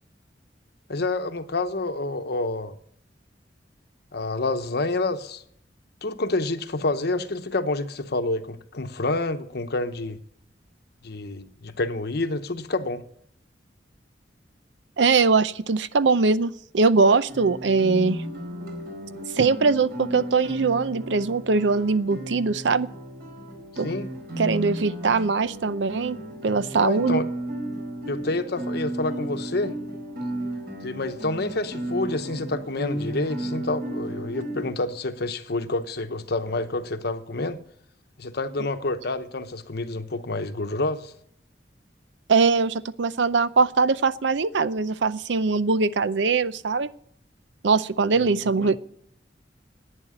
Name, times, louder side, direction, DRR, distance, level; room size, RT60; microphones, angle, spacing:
voice 1, 0.9-2.8 4.1-5.4 6.0-10.2 11.0-13.0 23.7-24.1 26.7-27.3 28.1-29.8 30.8-37.6 38.2-41.1 48.2-48.8, left 2 dB, 65° left, 0.9 m, -28 dB
voice 2, 15.0-18.2 19.3-22.9 23.8-23.9 24.4-26.2 26.4-27.2 42.3-46.9 47.6-48.8, right 4 dB, 80° right, 0.6 m, -21 dB
Guitar, 17.3-34.7, right 1 dB, 60° right, 4.5 m, -34 dB
11.0 x 9.1 x 9.8 m
head